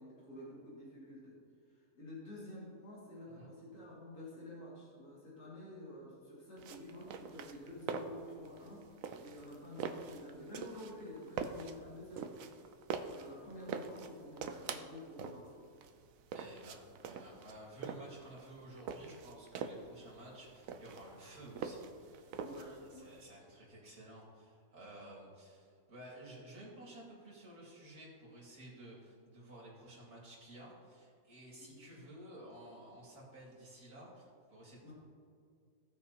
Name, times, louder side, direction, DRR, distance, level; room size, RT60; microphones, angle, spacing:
voice 1, 0.0-1.4 1.7-8.8 9.2-12.3 13.0-15.5 22.4-23.1 31.6-31.8 34.8-34.9, left 1 dB, 80° left, -8 dB, 2.9 m, -50 dB
sound 1, 6.6-23.2, right 6 dB, 70° right, 1.0 m, -44 dB
voice 2, 16.3-22.4 22.6-34.9, right 1 dB, 85° right, -4 dB, 3.0 m, -53 dB
17.0 x 6.4 x 2.9 m, 2.3 s
omnidirectional pair, 1.6 m